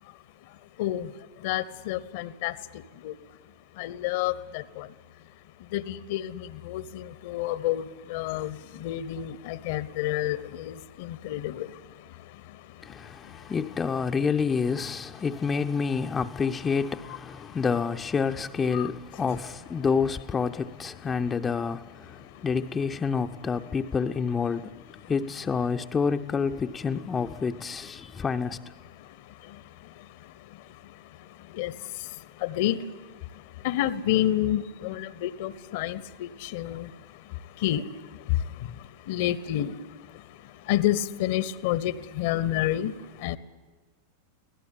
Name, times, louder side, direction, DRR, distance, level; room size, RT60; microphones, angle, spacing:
voice 1, 1.4-2.5 3.0-3.1 3.8-4.9 5.7-7.8 8.1-11.7 18.7-18.9 31.5-31.7 32.4-32.8 33.6-36.9 37.6-37.8 39.1-39.8 40.7-42.9 43.2-43.4, left 13 dB, 50° left, 1.0 m, -29 dB
voice 2, 12.8-24.8 25.1-28.6, left 5 dB, 20° left, 0.7 m, -28 dB
24.0 x 17.5 x 8.5 m
figure-of-eight pair, 90°, 0 cm